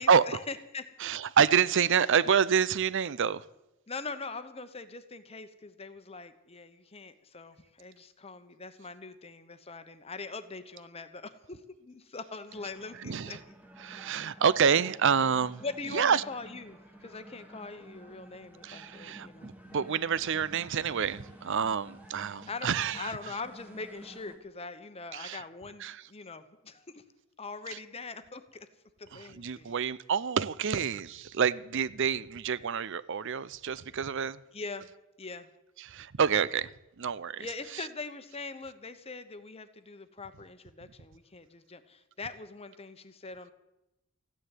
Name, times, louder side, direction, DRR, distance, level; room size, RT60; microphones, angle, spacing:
voice 1, 0.0-1.1 3.9-13.6 13.8-14.2 15.6-19.5 22.5-27.0 27.4-28.7 29.0-29.8 34.5-34.9 35.2-35.5 37.4-43.5, left 4 dB, 30° left, 1.0 m, -42 dB
voice 2, 1.0-3.4 13.0-13.4 13.8-15.6 15.9-16.2 18.6-23.2 25.1-25.4 25.8-26.0 29.1-34.4 35.8-36.7 37.0-37.5 37.7-37.9, right 7 dB, 55° right, 0.5 m, -28 dB
sound 1, 12.5-24.4, right 1 dB, 5° right, 1.6 m, -52 dB
15.0 x 9.8 x 9.1 m
head